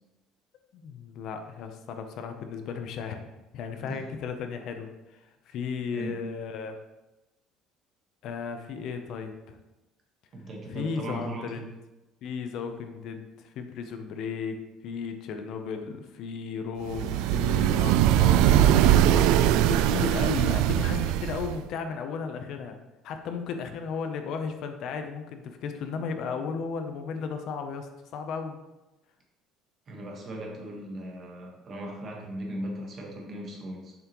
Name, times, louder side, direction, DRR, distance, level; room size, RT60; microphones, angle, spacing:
voice 1, 0.7-3.3 3.5-6.8 8.2-9.6 10.7-11.6 12.2-19.3 19.7-22.8 23.0-28.6, left 5 dB, 50° left, 6 dB, 0.6 m, -35 dB
voice 2, 5.9-6.2 10.3-11.7 29.9-33.9, right 1 dB, 30° right, 1 dB, 1.2 m, -38 dB
sound 1, 16.9-21.6, right 11 dB, 85° right, 0.3 m, -21 dB
7.3 x 5.8 x 3.0 m, 1.0 s
cardioid pair, 175°, 0 cm